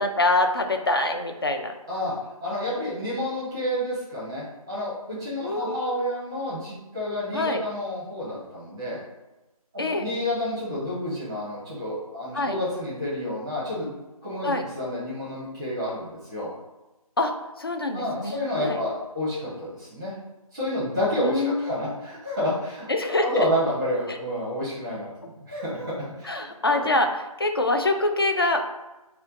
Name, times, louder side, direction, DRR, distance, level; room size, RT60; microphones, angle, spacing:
voice 1, 0.0-1.7 5.4-5.9 7.3-7.6 9.8-10.1 12.3-12.6 14.4-14.7 17.2-17.3 17.6-18.8 21.2-22.0 22.9-23.5 24.1-24.2 26.2-28.6, left 2 dB, 40° left, 5 dB, 0.4 m, -25 dB
voice 2, 2.4-9.0 9.7-13.9 14.2-16.5 17.9-20.1 20.5-22.9 23.2-25.1 25.4-26.9, left 1 dB, 10° right, -8 dB, 0.7 m, -29 dB
4.3 x 2.2 x 3.7 m, 1.0 s
figure-of-eight pair, 160°, 19 cm